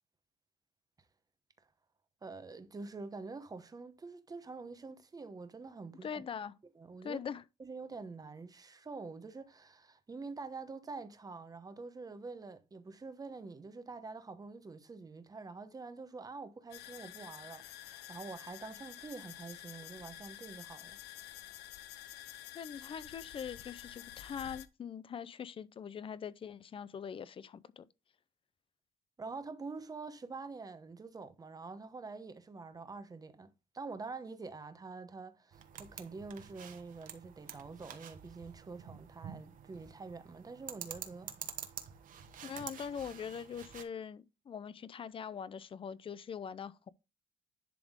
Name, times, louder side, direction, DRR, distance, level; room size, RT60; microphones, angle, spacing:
voice 1, 2.2-6.2 6.7-7.2 7.6-21.0 29.2-41.6, right 4 dB, 20° right, 0.9 m, -46 dB
voice 2, 6.0-6.5 7.0-7.4 22.5-27.9 42.4-46.9, left 7 dB, 30° left, 0.5 m, -42 dB
sound 1, 16.7-24.7, left 13 dB, 80° left, 0.6 m, -49 dB
sound 2, 35.5-43.8, right 8 dB, 50° right, 1.1 m, -48 dB
10.5 x 3.6 x 3.6 m
cardioid pair, 110°, 17 cm